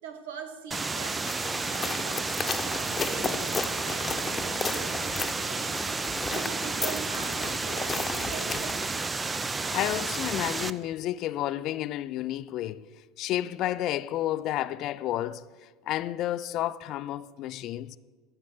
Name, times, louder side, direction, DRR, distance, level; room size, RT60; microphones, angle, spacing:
voice 1, 0.0-8.8, right 5 dB, 70° right, 1.4 m, -42 dB
sound 1, 0.7-10.7, right 3 dB, 20° right, 0.5 m, -31 dB
sound 2, 1.3-8.9, left 4 dB, 20° left, 1.1 m, -35 dB
voice 2, 9.7-12.9 13.2-15.5 15.9-18.0, left 13 dB, 50° left, 0.4 m, -31 dB
14.5 x 6.6 x 6.5 m
hypercardioid pair, 75°, 0 cm